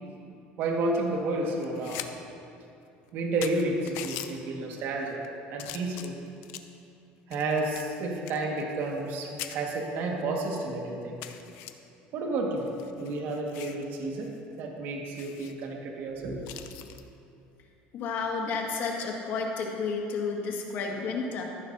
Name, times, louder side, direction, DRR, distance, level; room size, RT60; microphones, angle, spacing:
voice 1, 0.6-2.0 3.1-5.2 5.5-6.1 7.3-11.2 12.1-12.7 13.0-14.3 14.6-16.4, right 2 dB, 60° right, 0 dB, 1.7 m, -31 dB
sound 1, 1.6-2.1 2.5-2.6 3.1-3.2 3.4-4.3 5.0-5.3 5.6-6.8 7.3-9.1 9.4-9.6 10.2-10.3 10.6-10.7 11.2-11.7 12.6-13.8 14.2-14.4 14.7-14.8 15.1-15.5 16.4-17.0 18.7-19.0, left 12 dB, 75° left, 0.6 m, -41 dB
voice 2, 17.9-21.4, left 4 dB, 55° left, 0 dB, 1.8 m, -31 dB
14.5 x 12.0 x 2.7 m, 2.7 s
cardioid pair, 130°, 4 cm